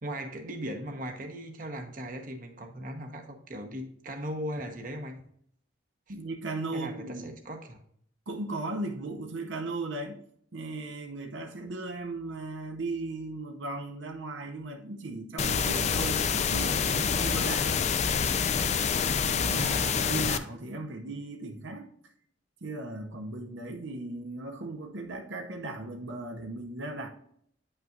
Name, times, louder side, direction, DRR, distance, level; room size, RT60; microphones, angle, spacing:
voice 1, 0.0-5.2 6.1-6.2 6.7-7.8 19.6-20.1, equal, 45° right, 1.0 m, -38 dB
voice 2, 6.1-7.3 8.3-10.2 10.5-17.9 19.3-21.9 22.6-27.1, right 2 dB, 75° right, 0.8 m, -37 dB
sound 1, 15.4-20.4, left 6 dB, 35° left, 0.4 m, -27 dB
9.1 x 5.6 x 2.4 m
head